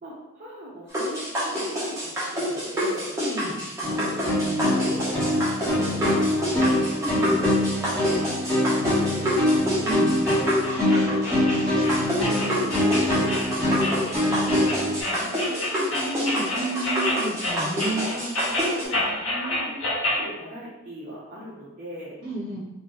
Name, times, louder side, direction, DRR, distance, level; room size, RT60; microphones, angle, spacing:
voice 1, 0.0-3.1 4.3-4.4 4.8-6.8 8.0-9.5 10.8-12.8 13.1-14.8 18.4-19.1 19.5-22.2, right 1 dB, 35° right, -8 dB, 0.7 m, -40 dB
sound 1, 0.9-18.8, equal, 15° right, 1.0 m, -28 dB
voice 2, 3.2-3.6 7.0-7.4 9.8-10.2 15.1-18.2 19.0-19.8 22.2-22.6, right 2 dB, 55° right, -5 dB, 1.3 m, -32 dB
sound 2, 3.8-15.0, left 1 dB, 5° left, 1.3 m, -24 dB
sound 3, 10.3-20.3, left 1 dB, 65° left, 1.0 m, -29 dB
3.9 x 2.5 x 3.0 m, 0.98 s
head